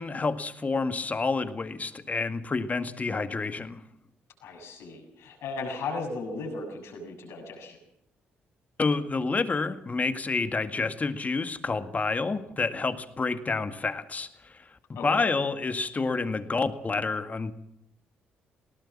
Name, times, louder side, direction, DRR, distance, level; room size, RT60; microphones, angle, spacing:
voice 1, 0.0-3.8 8.8-14.6 15.0-17.5, left 4 dB, 35° left, 10 dB, 1.9 m, -29 dB
voice 2, 4.4-7.8 14.9-15.3, left 3 dB, 75° left, 2 dB, 6.9 m, -36 dB
20.0 x 18.0 x 7.4 m, 0.76 s
supercardioid pair, 55°, 4 cm